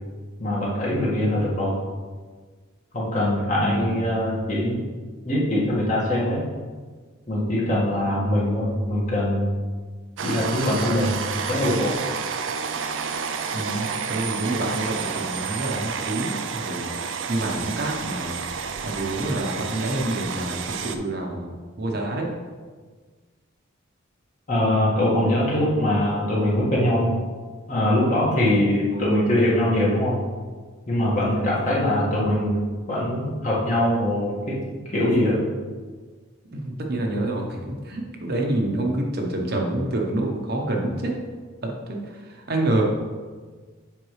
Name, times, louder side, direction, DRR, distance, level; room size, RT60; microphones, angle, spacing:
voice 1, 0.4-1.8 2.9-4.8 5.2-6.4 7.3-9.5 10.2-11.2 11.5-12.0 24.5-27.2 27.7-30.2 30.9-32.6 32.9-34.5 34.9-35.4, left 1 dB, 40° left, -6 dB, 1.8 m, -22 dB
voice 2, 3.6-4.0 13.5-16.9 17.3-18.4 18.8-22.3 36.5-41.1 41.6-42.8, right 1 dB, 50° right, 1 dB, 0.9 m, -27 dB
sound 1, 10.2-21.0, right 6 dB, 65° right, 0.4 m, -30 dB
7.8 x 5.2 x 3.2 m, 1.5 s
head